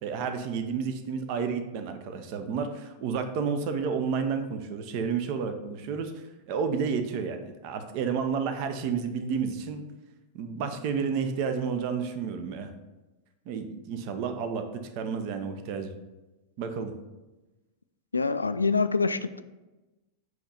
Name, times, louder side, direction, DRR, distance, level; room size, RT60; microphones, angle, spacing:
voice 1, 0.0-9.8 10.3-12.7 13.5-15.9 16.6-16.9, right 6 dB, 45° right, 8 dB, 0.6 m, -31 dB
voice 2, 18.1-19.4, left 4 dB, 80° left, 12 dB, 0.3 m, -25 dB
7.8 x 3.1 x 5.6 m, 1.1 s
figure-of-eight pair, 90°, 0 cm